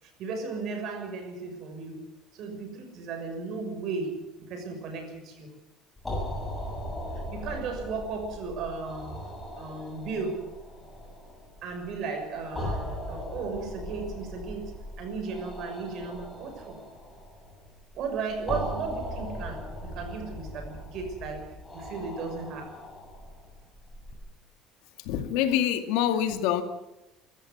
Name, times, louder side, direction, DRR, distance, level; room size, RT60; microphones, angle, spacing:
voice 1, 0.0-5.5 7.1-9.2 9.6-10.5 11.6-16.8 17.9-22.8, right 4 dB, 50° right, 6.4 m, -35 dB
sound 1, 6.0-24.1, left 1 dB, 10° left, 8.0 m, -39 dB
voice 2, 25.0-26.6, left 10 dB, 90° left, 2.2 m, -26 dB
24.0 x 14.0 x 9.5 m
cardioid pair, 165°, 0 cm